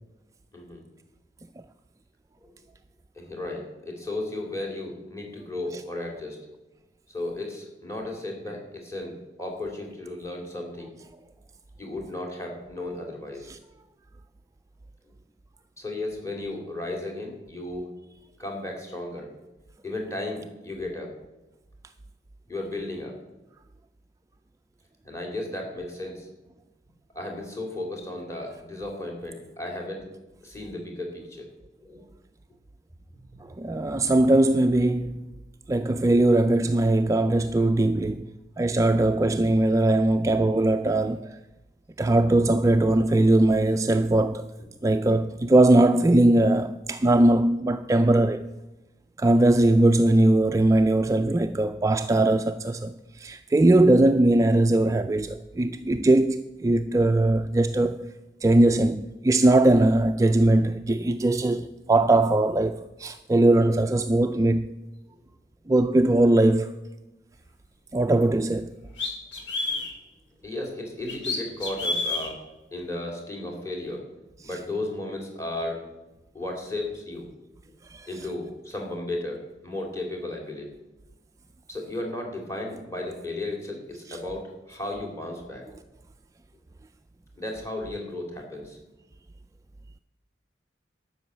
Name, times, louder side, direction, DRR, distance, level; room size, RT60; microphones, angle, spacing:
voice 1, 3.1-6.4 7.1-10.9 11.8-13.5 15.8-17.9 18.4-19.3 19.8-21.2 22.5-23.2 25.0-26.3 27.1-30.2 30.4-31.5 31.8-32.0 69.6-69.8 70.4-72.4 72.7-74.1 74.4-75.9 76.3-77.3 78.1-80.7 81.7-85.6 87.3-88.8, left 2 dB, 15° left, 2.8 m, -34 dB
voice 2, 33.6-35.2 35.7-38.3 38.6-41.4 42.0-44.5 44.8-48.5 49.2-58.1 58.4-64.7 65.7-66.7 67.9-68.7 77.9-78.1 84.1-84.2, right 2 dB, 20° right, 0.3 m, -20 dB
sound 1, 68.2-68.3 69.0-69.9 71.1-72.3, left 3 dB, 80° left, 2.4 m, -28 dB
12.0 x 6.2 x 8.4 m
head